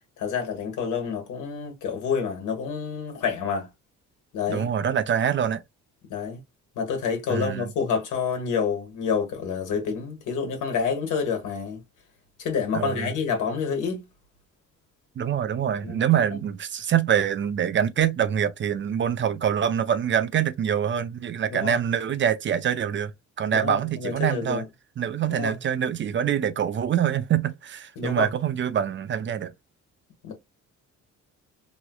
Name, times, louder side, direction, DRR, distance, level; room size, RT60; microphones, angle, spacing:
voice 1, 0.2-3.7 4.3-4.7 6.1-6.4 6.8-11.8 12.4-14.1 15.8-16.4 21.5-21.8 23.5-24.6 25.3-25.6 28.0-28.3 30.2-30.3, left 6 dB, 85° left, 1.3 m, -28 dB
voice 2, 4.5-5.6 7.3-7.7 12.7-13.1 15.2-23.1 23.4-24.7 25.0-29.5, right 9 dB, 40° right, 0.4 m, -25 dB
3.0 x 3.0 x 2.2 m
cardioid pair, 90°, 30 cm